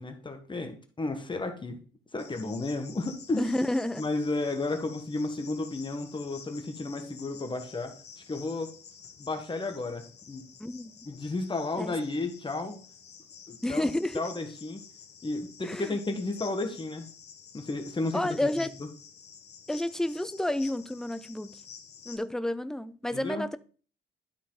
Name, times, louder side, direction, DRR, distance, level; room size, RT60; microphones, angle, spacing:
voice 1, 0.0-1.8 2.1-3.5 4.0-7.9 8.3-8.7 9.2-10.4 11.0-12.8 13.5-14.8 15.2-17.1 17.5-18.5 18.8-18.9 23.1-23.5, left 2 dB, 25° left, 1.4 m, -33 dB
Cricket, 2.2-22.2, left 6 dB, 55° left, 1.4 m, -50 dB
voice 2, 3.4-4.0 10.6-10.9 11.8-11.9 13.6-14.2 15.6-16.0 18.1-18.7 19.7-21.6 22.1-23.6, left 1 dB, 5° left, 0.5 m, -30 dB
12.0 x 4.1 x 3.9 m
cardioid pair, 90°, 20 cm